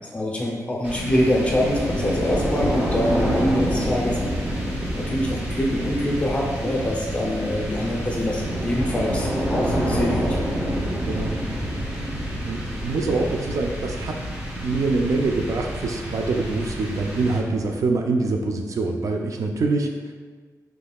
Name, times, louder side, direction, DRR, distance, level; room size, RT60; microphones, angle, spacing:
voice 1, 0.1-4.4 5.0-10.4, equal, 20° left, -2 dB, 0.6 m, -24 dB
sound 1, 0.8-17.8, equal, 25° right, 0.9 m, -27 dB
voice 2, 12.4-14.1 14.6-19.9, right 3 dB, 60° right, 3 dB, 0.4 m, -24 dB
5.2 x 3.2 x 2.3 m, 1.4 s
wide cardioid pair, 170°, 6 cm